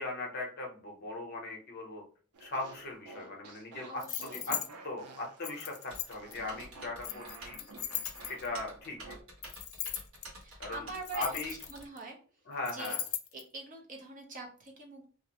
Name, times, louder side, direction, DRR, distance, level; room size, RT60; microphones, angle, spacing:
voice 1, 0.0-2.0 2.4-4.6 4.8-7.6 8.2-9.1 10.6-10.9 11.1-11.5 12.5-13.0, left 2 dB, 45° left, 0 dB, 0.7 m, -39 dB
sound 1, 2.3-9.2, right 3 dB, 85° right, 0.5 m, -51 dB
voice 2, 3.9-4.5 7.0-7.3 10.4-12.2 12.7-13.0 13.3-15.1, right 3 dB, 35° right, 0 dB, 0.6 m, -44 dB
sound 2, 4.0-4.7 5.4-6.3 7.0-8.6 9.4-10.3 10.9-12.0 12.7-13.4, left 11 dB, 70° left, 0.3 m, -38 dB
Typing, 5.9-11.9, right 1 dB, 65° right, 1.2 m, -49 dB
2.5 x 2.0 x 2.8 m, 0.41 s
head